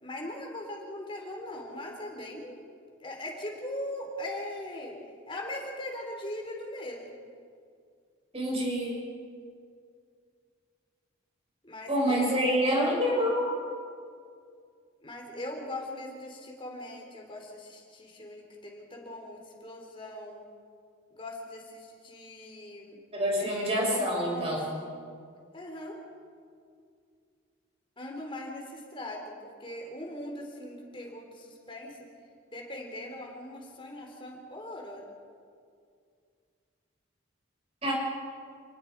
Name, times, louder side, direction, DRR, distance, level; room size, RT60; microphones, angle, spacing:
voice 1, 0.0-2.6 3.0-4.9 5.3-7.1 11.6-13.3 15.0-20.4 21.1-23.0 23.4-23.6 23.9-24.9 25.5-26.0 28.0-32.0 32.5-35.0, left 1 dB, 25° left, 0 dB, 3.9 m, -40 dB
voice 2, 8.3-9.0 11.9-13.5 23.1-24.7 37.8-37.9, equal, 30° right, -2 dB, 6.5 m, -27 dB
28.5 x 19.0 x 4.9 m, 2.2 s
head